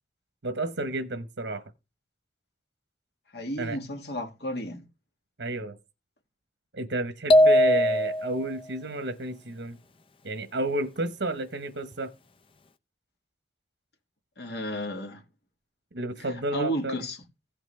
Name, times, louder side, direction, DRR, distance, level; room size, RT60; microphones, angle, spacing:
voice 1, 0.4-1.6 3.6-3.8 5.4-5.8 6.7-9.8 10.2-12.1 15.9-17.0, right 2 dB, 80° right, 1.2 m, -31 dB
voice 2, 3.3-4.8 14.4-15.2 16.5-17.2, equal, 65° left, 2.2 m, -33 dB
sound 1, 7.3-8.5, equal, 30° left, 0.6 m, -19 dB
16.0 x 5.9 x 3.3 m
head